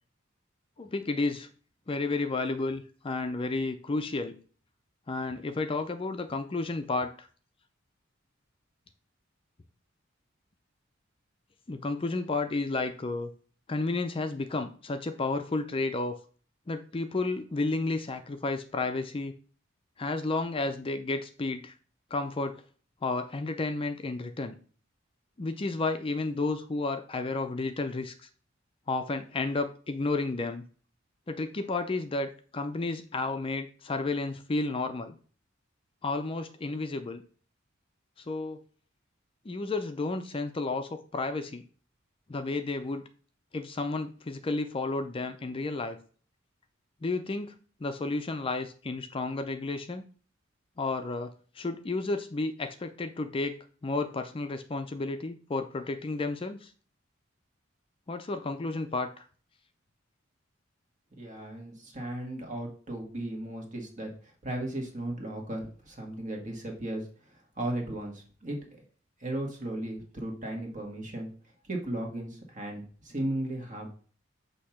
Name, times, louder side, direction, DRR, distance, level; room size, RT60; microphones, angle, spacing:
voice 1, 0.8-1.5 1.9-4.4 5.1-7.3 11.7-13.3 13.7-16.2 16.7-19.3 20.0-21.7 22.1-22.6 23.0-24.6 25.4-28.1 28.9-30.6 31.3-35.2 36.0-37.2 38.2-38.6 39.5-41.6 42.3-43.0 43.5-46.0 47.0-47.6 47.8-50.0 50.8-56.7 58.1-59.2, left 3 dB, 30° left, 7 dB, 0.4 m, -32 dB
voice 2, 61.2-68.6 69.2-71.3 71.6-73.9, right 1 dB, 40° right, 1 dB, 1.6 m, -36 dB
6.5 x 2.8 x 5.7 m, 0.41 s
head